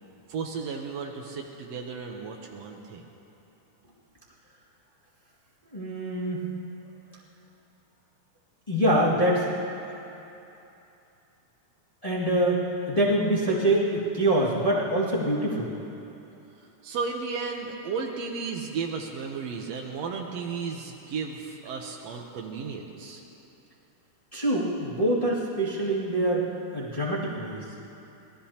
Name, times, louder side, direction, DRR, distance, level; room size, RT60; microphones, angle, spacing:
voice 1, 0.3-3.0 16.6-23.2, right 5 dB, 85° right, 0 dB, 1.4 m, -34 dB
voice 2, 5.6-6.4 8.7-9.5 12.0-15.8 24.3-26.5 26.7-27.7, right 1 dB, 15° left, -7 dB, 1.2 m, -25 dB
26.0 x 19.0 x 2.9 m, 2.9 s
omnidirectional pair, 4.3 m